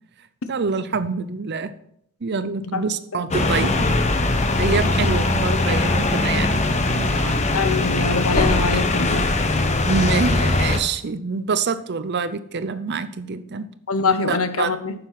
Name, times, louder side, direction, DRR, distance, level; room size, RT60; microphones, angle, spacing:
voice 1, 0.5-1.7 2.2-3.9 4.6-7.5 8.7-8.8 9.8-13.7 14.0-14.7, right 5 dB, 55° right, 13 dB, 0.6 m, -26 dB
sound 1, 3.3-10.8, left 2 dB, 35° left, 0.9 m, -20 dB
voice 2, 7.5-9.2 13.9-14.9, left 4 dB, 85° left, 10 dB, 0.9 m, -23 dB
9.8 x 6.8 x 4.1 m, 0.69 s
head